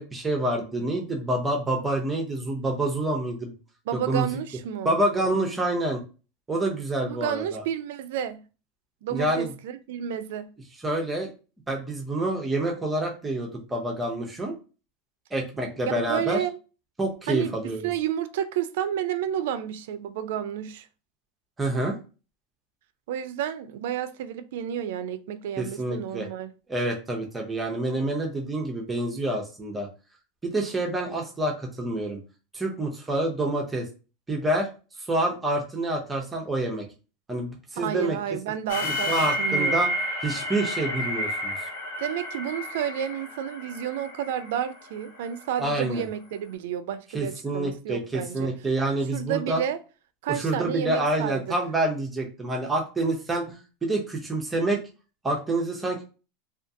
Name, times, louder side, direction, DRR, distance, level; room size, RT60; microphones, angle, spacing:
voice 1, 0.0-3.5 4.1-4.3 4.8-6.0 6.5-7.6 9.1-9.5 10.8-11.3 11.7-14.5 15.3-16.4 17.0-17.9 21.6-22.0 25.6-26.3 26.7-29.9 30.4-32.2 32.5-33.9 34.3-34.7 35.1-36.9 37.3-38.2 38.8-39.9 40.2-41.5 45.6-46.0 47.1-49.6 50.3-54.8 55.2-56.0, right 2 dB, 10° right, 0.5 m, -27 dB
voice 2, 3.9-5.0 7.0-8.4 9.0-10.5 15.8-16.6 17.3-17.5 17.8-20.9 23.1-26.5 37.8-39.1 39.4-39.9 42.0-48.5 49.1-49.8 50.2-51.4, right 10 dB, 70° right, 0.3 m, -31 dB
sound 1, 38.7-45.6, equal, 85° left, 0.7 m, -30 dB
2.5 x 2.3 x 2.5 m
supercardioid pair, 160°, 0 cm